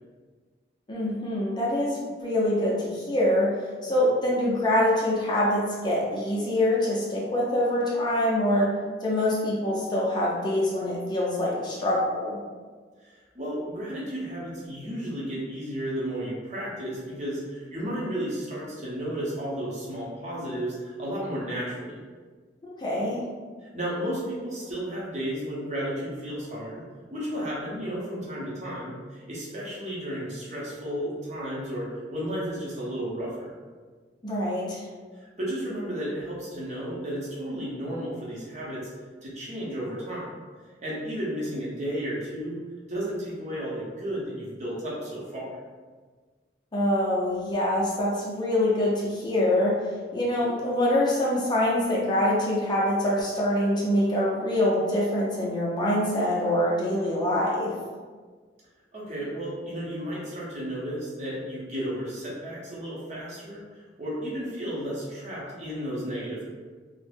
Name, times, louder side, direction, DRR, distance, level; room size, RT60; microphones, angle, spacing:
voice 1, 0.9-3.5 3.8-8.7 9.0-12.4 22.8-23.2 34.2-34.8 46.7-49.8 50.1-57.7, left 1 dB, 25° left, -5 dB, 0.4 m, -25 dB
voice 2, 13.0-22.0 23.6-26.8 27.1-33.5 35.1-38.9 39.2-40.3 40.8-42.6 42.9-45.5 58.9-66.4, equal, 40° right, -6 dB, 0.7 m, -33 dB
2.4 x 2.0 x 3.3 m, 1.5 s
head